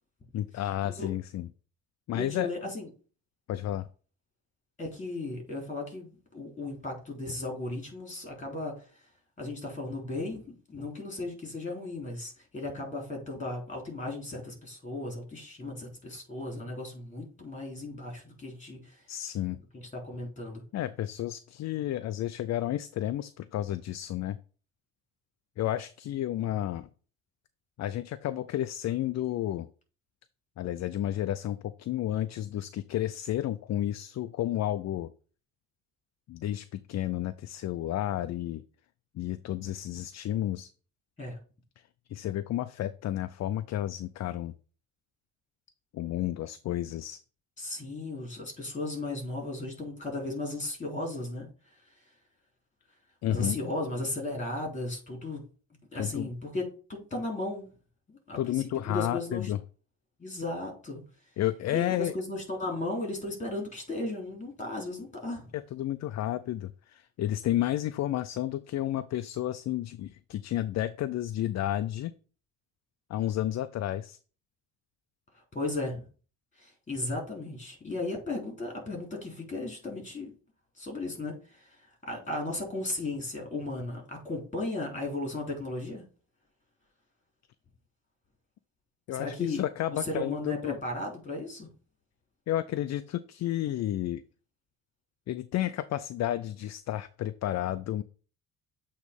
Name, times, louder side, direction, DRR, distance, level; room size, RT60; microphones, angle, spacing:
voice 1, 0.3-1.5 2.1-2.5 3.5-3.9 19.1-19.6 20.7-24.4 25.6-26.9 27.8-29.7 30.6-35.1 36.3-38.6 39.1-40.7 42.1-44.5 45.9-47.2 53.2-53.6 56.0-56.3 58.4-59.6 61.4-62.1 65.5-72.1 73.1-74.2 89.1-90.8 92.5-94.2 95.3-98.0, left 13 dB, 50° left, 12 dB, 0.5 m, -31 dB
voice 2, 2.1-2.9 4.8-8.7 9.4-10.4 10.7-19.0 19.7-20.6 41.2-41.4 47.6-51.5 53.3-55.4 55.9-57.7 58.1-58.6 58.8-59.5 60.2-61.0 61.7-65.5 75.5-76.1 76.6-80.3 80.8-86.0 89.1-89.6 90.0-91.7, left 2 dB, 20° left, 1 dB, 3.5 m, -35 dB
8.0 x 3.1 x 5.2 m, 0.38 s
cardioid pair, 100°, 35 cm